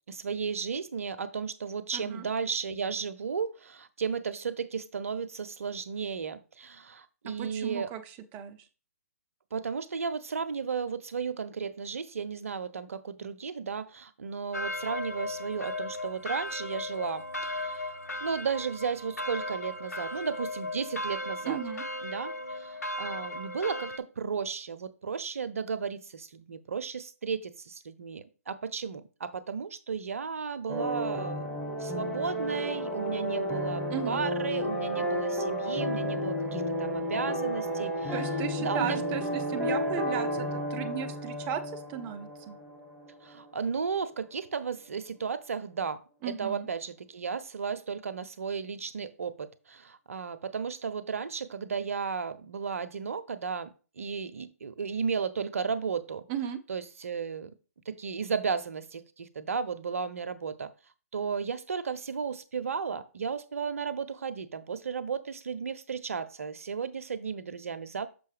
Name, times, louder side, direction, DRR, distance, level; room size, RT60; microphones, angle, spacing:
voice 1, 0.1-7.9 9.5-17.9 18.2-21.6 22.0-31.5 31.8-38.1 38.6-39.0 43.2-56.2 56.7-57.5 57.9-60.7 61.1-68.1, right 5 dB, 60° right, 0.6 m, -34 dB
voice 2, 1.9-2.3 7.4-8.6 21.5-21.8 33.9-34.2 38.1-42.6 46.2-46.7 56.3-56.6, right 9 dB, 20° right, 0.6 m, -35 dB
sound 1, 14.5-24.0, left 1 dB, 85° left, 0.6 m, -36 dB
sound 2, 30.7-43.5, equal, 5° right, 1.1 m, -32 dB
6.7 x 5.5 x 3.3 m
figure-of-eight pair, 135°, 8 cm